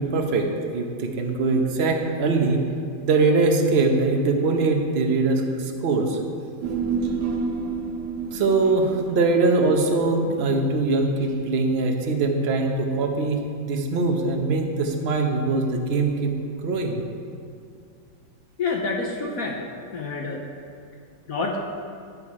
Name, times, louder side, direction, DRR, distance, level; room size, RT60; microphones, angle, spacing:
voice 1, 0.0-2.6 3.0-6.2 8.3-13.4 13.6-16.3 16.6-17.0, right 3 dB, 50° right, 3 dB, 0.8 m, -22 dB
Human voice, 6.6-11.2 11.5-11.6, right 4 dB, 75° right, 1.5 m, -30 dB
voice 2, 18.6-19.6 19.9-20.4 21.3-21.6, left 3 dB, 60° left, 1 dB, 1.0 m, -27 dB
10.5 x 6.9 x 4.8 m, 2.4 s
omnidirectional pair, 2.1 m